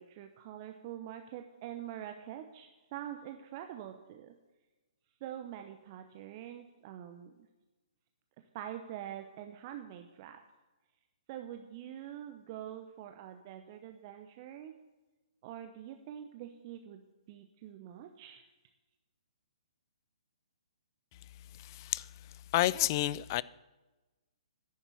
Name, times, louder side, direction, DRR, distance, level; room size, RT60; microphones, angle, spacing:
voice 1, 0.0-4.4 5.2-7.5 8.4-10.4 11.3-14.8 15.4-18.5, right 11 dB, 35° right, 0.8 m, -45 dB
voice 2, 21.6-22.1 22.5-23.4, left 16 dB, 35° left, 0.3 m, -30 dB
10.5 x 7.0 x 8.4 m
figure-of-eight pair, 125°, 3 cm